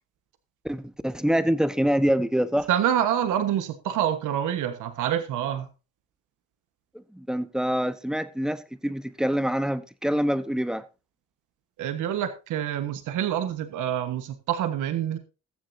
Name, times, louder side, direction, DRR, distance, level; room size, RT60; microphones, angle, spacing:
voice 1, 0.6-2.7 6.9-10.8, equal, ahead, 1.0 m, -25 dB
voice 2, 2.7-5.7 11.8-15.2, right 10 dB, 85° right, 1.3 m, -26 dB
21.0 x 7.4 x 2.7 m
cardioid pair, 90°, 30 cm